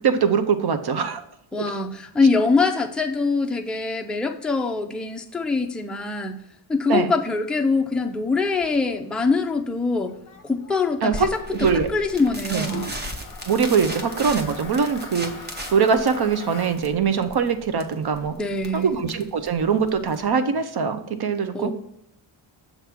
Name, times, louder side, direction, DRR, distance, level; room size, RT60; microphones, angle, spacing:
voice 1, 0.0-1.2 6.9-7.1 11.0-11.9 12.5-12.7 13.5-15.3 15.7-18.3 18.7-21.7, right 6 dB, 50° right, 10 dB, 0.7 m, -22 dB
voice 2, 1.5-6.4 6.7-10.1 10.4-11.4 11.9-12.9 18.3-19.0 21.5-21.7, left 4 dB, ahead, 3 dB, 0.4 m, -23 dB
Toilet flush, 7.7-19.2, left 5 dB, 40° left, 0.9 m, -44 dB
sound 1, 11.1-20.3, equal, 20° right, 0.8 m, -36 dB
7.2 x 3.6 x 5.8 m, 0.79 s
wide cardioid pair, 145°, 50 cm